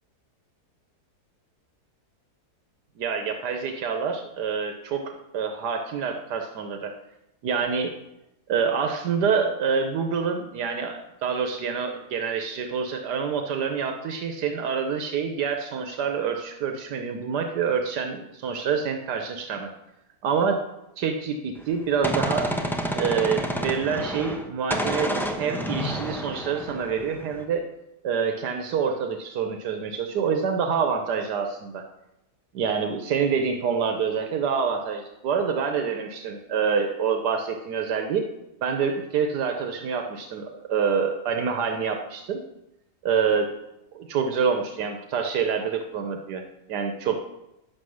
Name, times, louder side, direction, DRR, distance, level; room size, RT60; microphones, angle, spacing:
voice 1, 3.0-6.9 7.4-7.9 8.5-19.7 20.2-20.6 21.0-22.5 23.0-27.6 28.0-31.8 32.5-38.3 38.6-42.4 43.0-43.5 43.9-46.4 46.7-47.1, right 6 dB, 85° right, 4 dB, 1.5 m, -26 dB
Gunshot gunfire, 21.6-24.5 24.7-27.4, equal, ahead, 1.0 m, -29 dB
11.0 x 7.7 x 6.3 m, 0.92 s
omnidirectional pair, 1.7 m